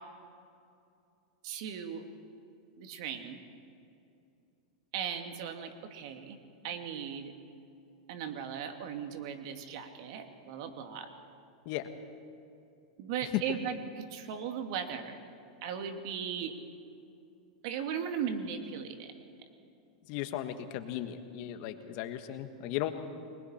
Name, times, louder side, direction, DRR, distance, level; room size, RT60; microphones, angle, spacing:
voice 1, 1.4-2.0 2.8-3.4 4.9-6.4 6.6-7.3 8.1-11.1 13.0-15.3 15.6-16.5 17.6-19.1, right 7 dB, 60° right, 6 dB, 2.1 m, -37 dB
voice 2, 20.1-22.9, left 12 dB, 55° left, 8 dB, 1.5 m, -36 dB
30.0 x 21.0 x 4.4 m, 2.6 s
hypercardioid pair, 115°, 3 cm